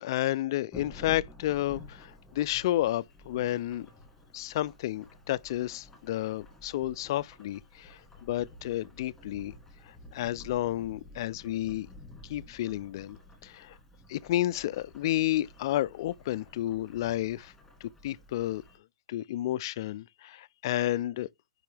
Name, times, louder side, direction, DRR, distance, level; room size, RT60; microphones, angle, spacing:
voice 1, 0.0-3.9 4.3-9.5 9.8-11.9 12.2-13.8 14.1-17.5 17.8-18.6 19.1-21.3, left 14 dB, 45° left, 0.4 m, -31 dB
Thunderstorm / Rain, 0.7-18.8, left 1 dB, 5° left, 2.4 m, -52 dB
6.6 x 5.3 x 3.3 m
hypercardioid pair, 150°, 3 cm